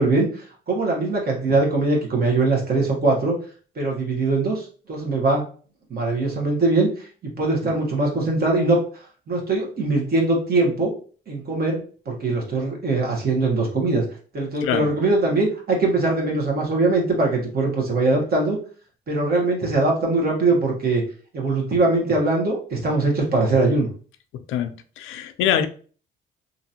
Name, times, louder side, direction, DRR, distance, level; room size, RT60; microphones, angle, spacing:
voice 1, 0.0-3.4 3.7-5.5 5.9-8.8 9.3-10.9 11.3-14.0 14.3-18.6 19.1-21.0 21.3-23.9, right 2 dB, 50° right, 1.3 m, -21 dB
voice 2, 24.5-25.7, left 10 dB, 90° left, 0.4 m, -24 dB
2.9 x 2.6 x 2.8 m
cardioid pair, 90°, 20 cm